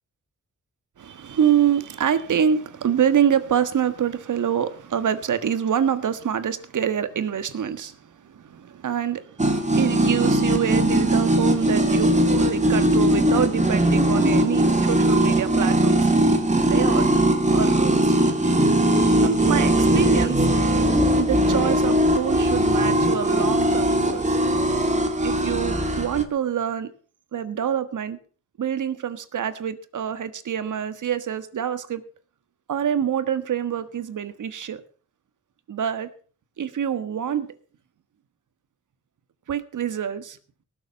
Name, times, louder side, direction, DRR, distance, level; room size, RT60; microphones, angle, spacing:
voice 1, 1.0-16.1 16.6-17.1 17.5-18.2 19.2-20.5 21.2-24.4 25.2-26.9 27.3-28.2 28.6-32.0 32.7-34.8 35.7-36.1 36.6-37.5 39.5-40.4, right 8 dB, 75° right, 12 dB, 1.5 m, -26 dB
sound 1, 9.4-26.2, right 1 dB, 25° right, 2.5 m, -20 dB
18.5 x 7.4 x 7.0 m, 0.43 s
cardioid pair, 90°, 31 cm